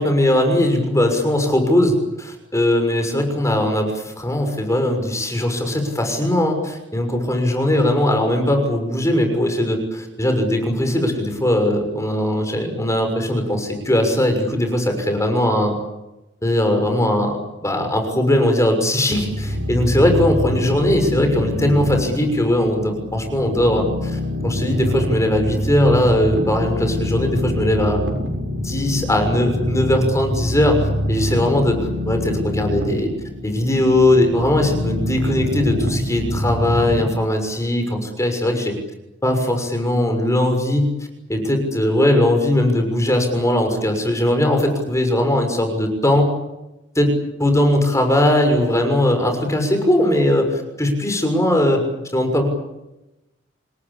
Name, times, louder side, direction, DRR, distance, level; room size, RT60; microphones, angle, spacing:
voice 1, 0.0-15.8 16.4-28.0 28.5-33.1 33.4-38.8 39.2-40.9 41.3-46.3 46.9-47.1 47.4-51.8 52.1-52.5, left 1 dB, 15° left, 5 dB, 6.4 m, -19 dB
sound 1, 19.1-37.0, left 1 dB, 80° right, 7.0 m, -25 dB
28.5 x 21.0 x 8.4 m, 0.96 s
head